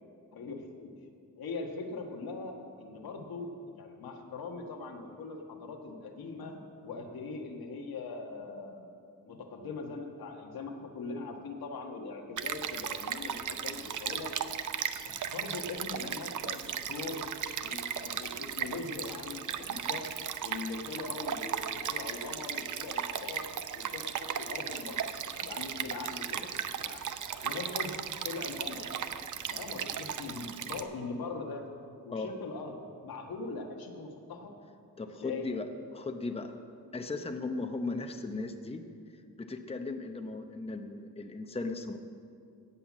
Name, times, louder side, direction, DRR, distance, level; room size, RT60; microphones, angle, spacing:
voice 1, 0.3-0.9 1.4-8.9 9.2-14.4 15.0-17.2 17.6-20.1 20.4-23.5 23.7-25.0 25.3-27.0 27.4-27.9 28.2-28.8 29.4-31.6 32.0-32.8 33.0-34.5 35.2-35.5, left 3 dB, 90° left, 2 dB, 1.5 m, -41 dB
Stream, 12.4-30.8, right 8 dB, 60° right, 0.6 m, -36 dB
voice 2, 35.0-35.7 35.9-36.6 36.9-38.8 39.4-42.0, left 3 dB, 15° left, 6 dB, 0.7 m, -37 dB
17.0 x 5.8 x 7.3 m, 2.4 s
wide cardioid pair, 105°, 35 cm